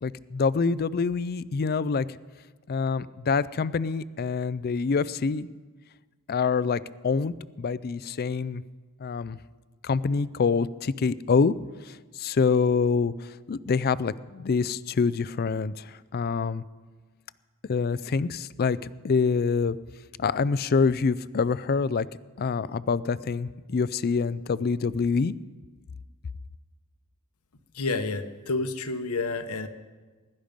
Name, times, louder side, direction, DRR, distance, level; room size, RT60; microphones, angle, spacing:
voice 1, 0.0-2.1 2.7-5.5 6.3-8.6 9.0-9.4 9.8-11.5 11.9-16.6 17.7-18.8 19.0-19.8 20.2-22.1 22.4-25.3, left 5 dB, 45° left, 18 dB, 0.4 m, -26 dB
voice 2, 27.7-29.7, left 3 dB, 90° left, 9 dB, 1.1 m, -29 dB
20.5 x 12.0 x 5.2 m, 1.4 s
head